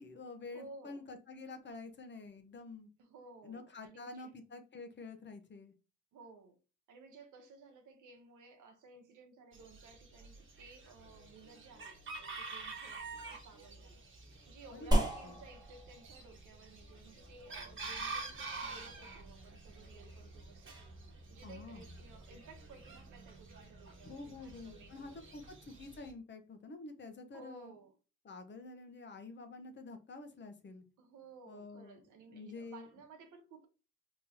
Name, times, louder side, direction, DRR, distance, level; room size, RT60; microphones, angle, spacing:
voice 1, 0.0-2.9 3.4-5.7 14.7-15.4 21.4-21.9 24.0-27.7 28.2-30.8 31.5-32.0 32.3-32.9, left 3 dB, 40° left, 0.8 m, -48 dB
voice 2, 0.5-1.0 3.0-4.3 6.1-6.6 6.9-14.0 14.5-20.8 21.3-25.4 27.3-27.9 31.0-33.7, right 3 dB, 80° right, 1.0 m, -56 dB
Chicken rooster, 9.5-26.1, right 3 dB, 40° right, 1.3 m, -48 dB
sound 1, 14.9-23.6, right 1 dB, 15° right, 1.2 m, -39 dB
3.9 x 3.0 x 2.7 m
cardioid pair, 90°, 30 cm